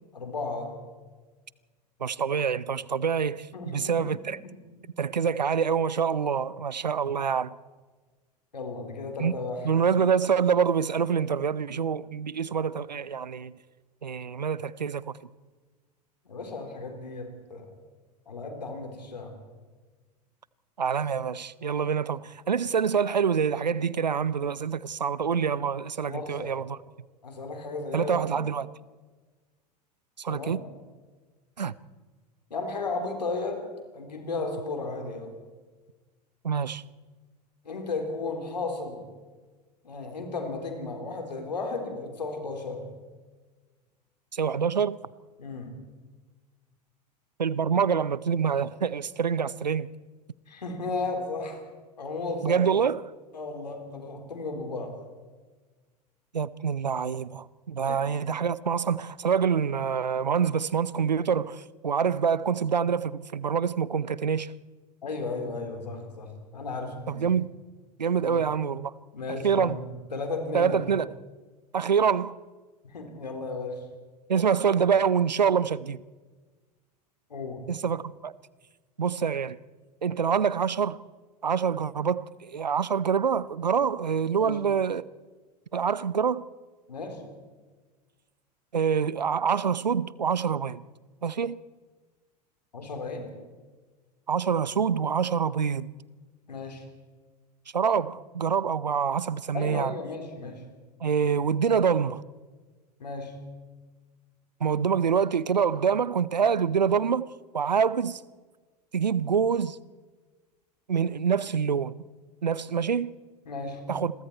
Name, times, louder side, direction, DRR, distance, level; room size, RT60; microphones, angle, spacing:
voice 1, 0.1-0.8 3.5-4.0 4.2-4.6 8.5-9.7 16.3-17.7 18.3-19.4 26.1-26.5 27.2-28.1 30.3-30.6 32.5-33.7 33.9-35.3 37.6-39.0 39.8-42.9 45.4-45.8 50.5-51.6 52.0-52.6 53.3-55.0 57.9-58.1 65.0-67.2 68.2-68.4 69.1-70.9 72.8-73.9 77.3-77.7 84.4-84.6 86.9-87.2 92.7-93.3 96.5-96.9 99.5-100.7 103.0-103.4 113.5-113.9, left 3 dB, 80° left, 3.9 m, -34 dB
voice 2, 2.0-4.4 5.0-7.5 9.2-9.3 9.6-13.5 14.0-15.1 20.8-26.8 27.9-28.7 30.2-30.6 31.6-31.7 36.4-36.8 44.3-45.0 47.4-49.9 52.4-53.1 56.3-64.5 67.1-67.5 68.0-68.9 69.4-69.8 70.5-71.1 71.7-72.4 74.3-76.0 77.7-78.3 79.0-79.6 80.0-81.0 81.4-85.0 85.7-86.5 88.7-90.8 91.2-91.6 94.3-95.9 97.7-99.9 101.0-102.2 104.6-107.3 107.5-108.2 108.9-109.8 110.9-112.0 112.4-113.2 113.9-114.1, right 7 dB, 85° right, 0.7 m, -26 dB
28.5 x 22.5 x 4.5 m
figure-of-eight pair, 85°, 21 cm